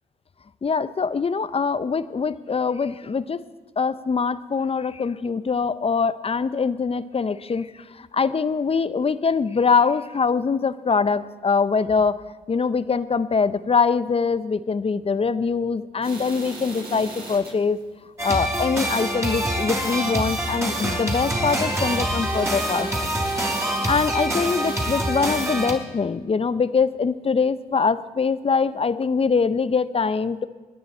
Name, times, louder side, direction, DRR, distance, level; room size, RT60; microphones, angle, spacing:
voice 1, 0.6-3.4 3.8-7.7 8.0-17.8 18.2-23.1 23.8-30.5, left 5 dB, 30° left, 14 dB, 0.7 m, -23 dB
sound 1, 16.0-17.7 18.0-18.1 18.5-18.6 19.0-19.2 19.5-20.0 20.4-20.7 21.0-24.3 24.6-24.9, right 2 dB, 55° right, 5.9 m, -38 dB
sound 2, 18.2-25.7, right 1 dB, 15° right, 3.9 m, -25 dB
23.5 x 9.5 x 4.4 m, 1.3 s
supercardioid pair, 50°, 19 cm